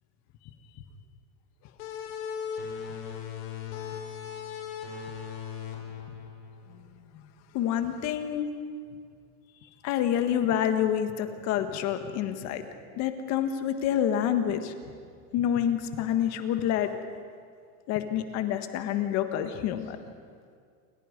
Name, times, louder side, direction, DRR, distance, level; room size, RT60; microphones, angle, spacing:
sound 1, 1.8-7.1, left 7 dB, 75° left, 4.7 m, -38 dB
voice 1, 7.5-8.5 9.8-12.6 13.0-14.7 15.3-16.9 17.9-20.0, left 10 dB, 35° left, 8 dB, 1.7 m, -27 dB
29.0 x 22.0 x 5.3 m, 2.1 s
supercardioid pair, 165°, 45 cm